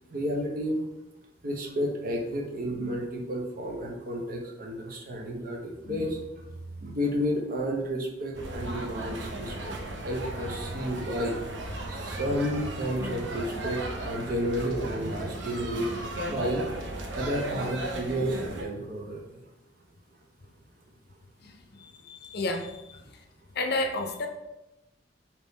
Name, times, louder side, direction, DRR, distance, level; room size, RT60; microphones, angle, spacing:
voice 1, 0.1-0.8 1.4-6.2 6.8-9.7 10.0-11.4 11.9-15.9 16.3-16.7 17.1-19.2, equal, 50° right, 2 dB, 0.7 m, -31 dB
sound 1, 8.3-18.6, right 1 dB, 85° right, 0.6 m, -36 dB
voice 2, 21.8-23.0 23.6-24.3, left 2 dB, 60° left, 4 dB, 0.5 m, -32 dB
3.6 x 2.9 x 4.1 m, 0.96 s
head